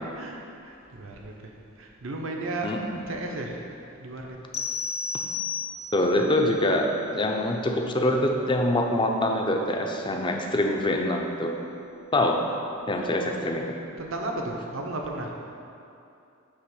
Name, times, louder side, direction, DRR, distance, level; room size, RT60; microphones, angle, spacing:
voice 1, 0.1-3.6 4.0-4.4 13.2-13.5 14.0-15.3, right 2 dB, 70° right, 1 dB, 0.8 m, -34 dB
sound 1, 4.5-6.1, left 5 dB, 50° left, 0.9 m, -31 dB
voice 2, 5.9-11.6 12.1-12.5 12.9-13.8, left 1 dB, 25° left, 2 dB, 0.5 m, -25 dB
8.5 x 3.0 x 6.0 m, 2.7 s
head